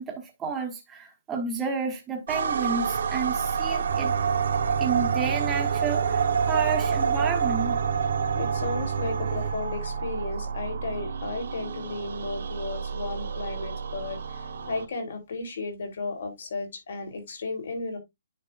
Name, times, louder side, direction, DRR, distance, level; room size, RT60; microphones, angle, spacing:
voice 1, 0.0-4.2 4.8-7.8, right 5 dB, 10° right, 1.2 m, -31 dB
sound 1, 2.3-14.9, right 6 dB, 65° right, 1.4 m, -28 dB
sound 2, 3.9-9.5, right 8 dB, 35° right, 1.3 m, -31 dB
voice 2, 8.1-18.0, left 3 dB, 60° left, 3.3 m, -34 dB
9.5 x 5.2 x 2.4 m
hypercardioid pair, 175°, 0 cm